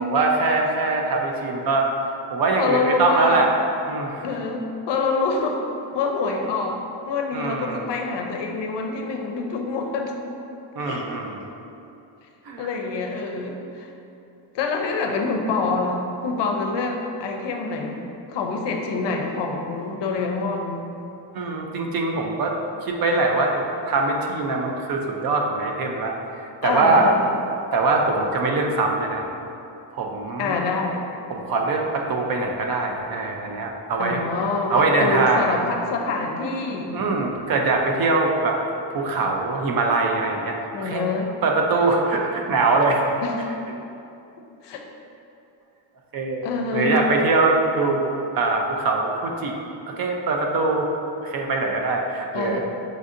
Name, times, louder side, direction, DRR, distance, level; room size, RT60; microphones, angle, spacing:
voice 1, 0.0-1.9 2.3-3.5 3.9-4.2 7.3-7.8 10.8-11.4 12.5-12.7 21.3-22.5 22.8-27.1 27.7-29.3 29.9-30.6 31.3-34.2 34.7-35.6 36.9-38.6 38.9-41.0 41.4-43.1 46.1-46.4 46.7-49.5 49.9-50.9 51.2-52.6, right 3 dB, 50° right, 1 dB, 0.5 m, -22 dB
voice 2, 2.6-3.4 4.2-5.6 5.9-6.8 7.1-10.1 10.8-11.0 12.6-13.9 14.5-18.0 18.3-20.9 26.6-27.4 30.4-31.0 34.0-37.0 40.7-41.3 43.2-43.4 44.6-44.8 46.4-47.0 52.3-52.6, left 3 dB, 60° left, 2 dB, 0.5 m, -26 dB
6.2 x 2.6 x 2.5 m, 2.7 s
cardioid pair, 130°, 48 cm